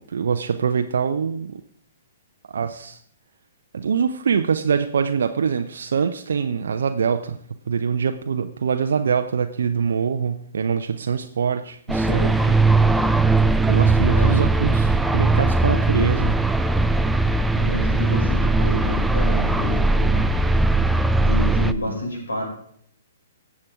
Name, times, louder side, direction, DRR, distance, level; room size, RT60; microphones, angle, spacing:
voice 1, 0.0-1.6 2.5-3.0 3.7-7.4 7.7-12.6 13.7-16.4, right 6 dB, 60° right, 7 dB, 0.6 m, -24 dB
sound 1, 11.9-21.7, right 2 dB, 5° right, 0.4 m, -19 dB
voice 2, 17.5-20.2 21.2-22.5, left 1 dB, 70° left, -2 dB, 6.0 m, -29 dB
18.0 x 7.4 x 3.6 m, 0.63 s
figure-of-eight pair, 115°, 0 cm